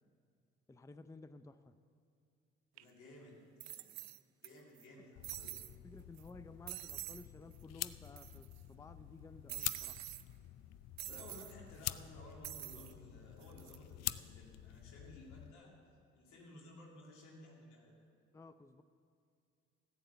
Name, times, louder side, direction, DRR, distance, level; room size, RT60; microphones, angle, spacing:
voice 1, 0.7-1.7 5.0-5.1 5.8-10.0 18.3-18.8, left 2 dB, 10° left, 12 dB, 0.5 m, -55 dB
voice 2, 2.7-4.0 4.4-5.6 11.1-15.8 16.1-17.9, left 1 dB, 75° left, -2 dB, 2.6 m, -56 dB
sound 1, 2.8-2.9 3.6-4.5 4.8-4.9 5.2-5.7 6.2-6.3 6.7-7.2 7.5-7.6 7.9-8.6 9.5-10.2 11.0-11.5 12.4-12.9 13.4-13.8, right 16 dB, 70° right, 0.5 m, -46 dB
sound 2, 5.1-15.5, left 14 dB, 60° left, 0.5 m, -47 dB
13.5 x 8.6 x 6.9 m, 2.3 s
hypercardioid pair, 50°, 29 cm